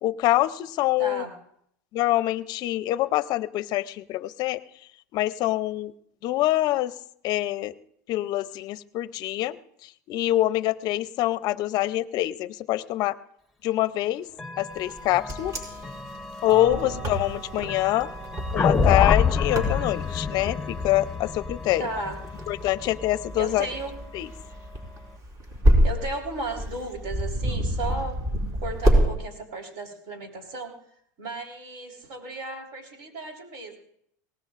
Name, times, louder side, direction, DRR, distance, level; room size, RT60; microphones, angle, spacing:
voice 1, 0.0-1.2 1.9-4.6 5.1-5.9 6.2-6.9 7.2-7.7 8.1-9.6 10.1-13.2 13.6-14.3 14.6-15.6 16.4-18.1 18.5-21.9 22.5-23.7 24.1-24.3, left 15 dB, 45° left, 15 dB, 0.6 m, -25 dB
voice 2, 1.0-1.3 16.6-17.0 21.8-22.2 23.4-24.0 25.8-28.2 28.6-30.7 31.2-33.8, right 2 dB, 60° right, 1 dB, 3.8 m, -35 dB
Chime / Clock, 14.3-25.2, left 1 dB, ahead, 1.3 m, -40 dB
Wind, 14.9-29.1, equal, 35° right, 4.1 m, -27 dB
sound 1, 18.6-22.8, left 6 dB, 15° left, 0.8 m, -25 dB
23.0 x 18.5 x 2.5 m, 0.70 s
supercardioid pair, 135°, 9 cm